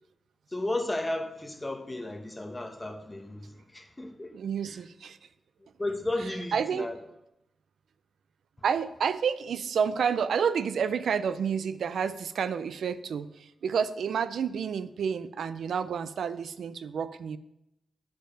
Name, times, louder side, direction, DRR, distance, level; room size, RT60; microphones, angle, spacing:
voice 1, 0.5-4.4 4.6-4.8 5.8-7.0, left 1 dB, 15° left, 1.1 m, -34 dB
voice 2, 4.3-5.2 6.5-6.9 8.6-17.4, right 7 dB, 85° right, 0.4 m, -29 dB
7.8 x 6.8 x 5.2 m
wide cardioid pair, 105°, 0 cm